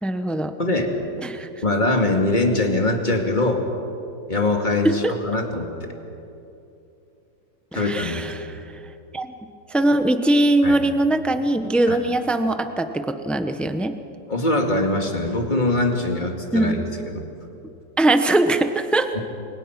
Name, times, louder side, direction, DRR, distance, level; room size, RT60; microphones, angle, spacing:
voice 1, 0.0-0.5 1.2-1.5 4.8-5.1 7.7-8.6 9.1-9.3 9.7-13.9 16.5-16.8 18.0-19.2, right 1 dB, ahead, 8 dB, 0.6 m, -21 dB
voice 2, 0.6-0.9 1.6-3.6 4.3-5.9 7.7-8.3 10.6-10.8 11.9-12.0 14.3-17.2 19.1-19.2, left 2 dB, 25° left, 2 dB, 2.5 m, -22 dB
29.0 x 23.5 x 6.0 m, 2.8 s
omnidirectional pair, 1.9 m